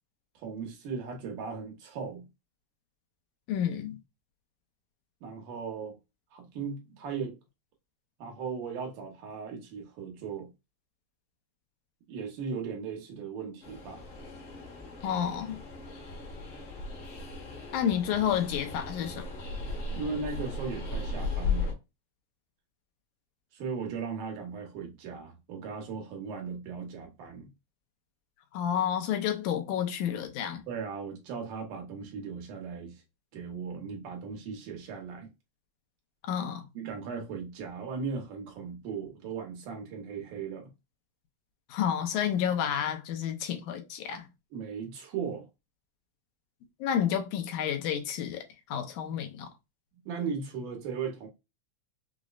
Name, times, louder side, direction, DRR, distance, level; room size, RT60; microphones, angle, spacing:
voice 1, 0.4-2.3 5.2-6.0 6.3-7.4 8.2-10.5 12.1-14.1 19.9-21.8 23.5-27.5 30.7-33.0 33.3-35.3 36.7-40.7 44.5-45.5 50.1-51.3, right 5 dB, 90° right, 2.6 m, -37 dB
voice 2, 3.5-4.0 15.0-15.6 17.7-19.3 28.5-30.6 36.2-36.7 41.7-44.3 46.8-48.4 48.7-49.5, left 9 dB, 90° left, 2.1 m, -30 dB
Train, 13.6-21.7, left 4 dB, 60° left, 1.5 m, -36 dB
6.0 x 2.0 x 2.4 m
omnidirectional pair, 3.6 m